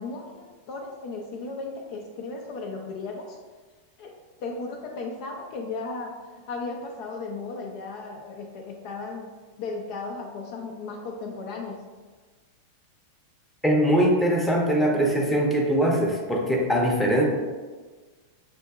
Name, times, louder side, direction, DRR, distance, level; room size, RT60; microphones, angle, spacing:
voice 1, 0.0-3.4 4.0-6.1 6.5-11.8, left 3 dB, 45° left, 1 dB, 0.5 m, -35 dB
voice 2, 13.6-17.2, equal, 5° left, -2 dB, 0.8 m, -22 dB
6.5 x 2.6 x 2.4 m, 1.4 s
figure-of-eight pair, 90°, 0 cm